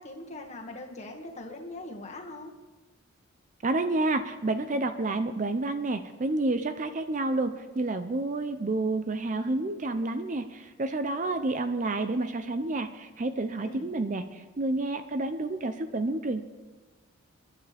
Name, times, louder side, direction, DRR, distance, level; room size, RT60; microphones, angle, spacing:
voice 1, 0.0-2.5 13.6-13.9, left 2 dB, 30° left, 1 dB, 1.7 m, -41 dB
voice 2, 3.6-16.4, right 2 dB, 35° right, 9 dB, 0.5 m, -29 dB
28.5 x 11.5 x 3.4 m, 1.3 s
head